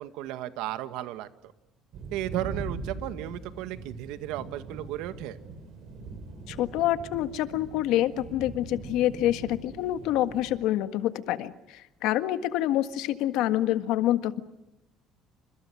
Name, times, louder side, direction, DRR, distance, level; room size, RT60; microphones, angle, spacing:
voice 1, 0.0-1.5 2.1-5.4, right 13 dB, 85° right, 11 dB, 1.9 m, -34 dB
sound 1, 1.9-10.5, right 3 dB, 50° right, 7.8 m, -41 dB
voice 2, 6.5-14.4, left 13 dB, 70° left, 11 dB, 1.6 m, -27 dB
29.5 x 27.0 x 6.3 m, 0.94 s
cardioid pair, 175°, 0 cm